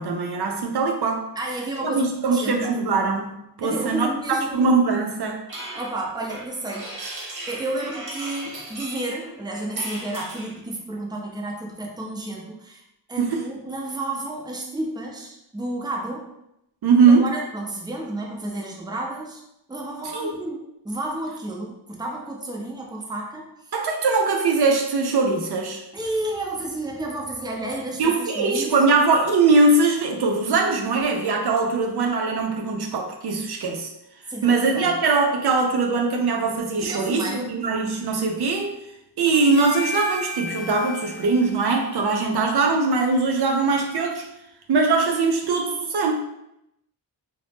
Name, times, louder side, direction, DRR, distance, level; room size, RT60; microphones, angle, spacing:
voice 1, 0.0-1.2 1.8-5.4 13.2-13.5 16.8-17.3 20.1-20.3 23.7-25.8 28.0-33.9 34.4-38.7 39.2-44.2 44.7-46.1, right 4 dB, 65° right, 2 dB, 0.5 m, -21 dB
voice 2, 1.4-2.8 3.6-4.6 5.7-7.1 7.5-12.8 13.1-16.3 17.1-19.4 19.7-20.6 20.8-23.5 25.9-28.7 34.3-35.0 36.8-37.5, right 1 dB, 10° right, -1 dB, 0.5 m, -31 dB
sound 1, 5.5-10.6, right 1 dB, 45° right, 0.9 m, -37 dB
Harmonica, 39.3-43.7, left 2 dB, 65° left, 0.7 m, -36 dB
2.6 x 2.0 x 3.3 m, 0.83 s
cardioid pair, 65°, 43 cm